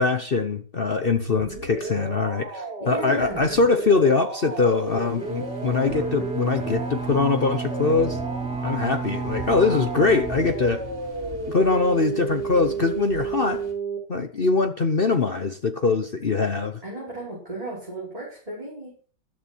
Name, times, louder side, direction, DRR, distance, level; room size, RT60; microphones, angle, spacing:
voice 1, 0.0-8.2 8.6-10.8 11.5-13.6 14.1-16.8, left 4 dB, 40° left, 8 dB, 0.8 m, -22 dB
sound 1, 1.2-14.0, right 3 dB, 60° right, 3.9 m, -33 dB
voice 2, 2.8-3.6 16.8-18.9, right 1 dB, 20° right, -6 dB, 5.7 m, -34 dB
sound 2, 4.5-13.7, right 3 dB, 35° right, 5.4 m, -42 dB
Bowed string instrument, 5.2-11.2, right 4 dB, 5° right, 2.5 m, -32 dB
14.0 x 12.0 x 4.5 m, 0.40 s
omnidirectional pair, 2.0 m